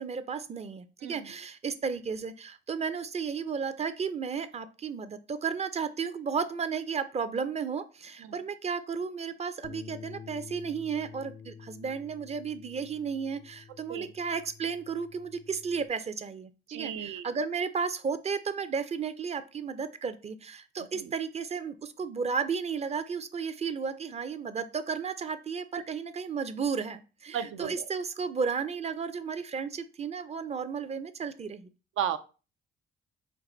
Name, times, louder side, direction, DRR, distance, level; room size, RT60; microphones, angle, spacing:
voice 1, 0.0-31.7, right 6 dB, 35° right, 12 dB, 0.5 m, -33 dB
Bass guitar, 9.6-15.9, left 6 dB, 75° left, 0.5 m, -48 dB
voice 2, 16.7-17.3 20.9-21.1 25.7-25.8 27.3-27.9 32.0-32.2, right 9 dB, 85° right, 10 dB, 0.5 m, -34 dB
4.6 x 2.5 x 3.8 m, 0.33 s
cardioid pair, 90°, 20 cm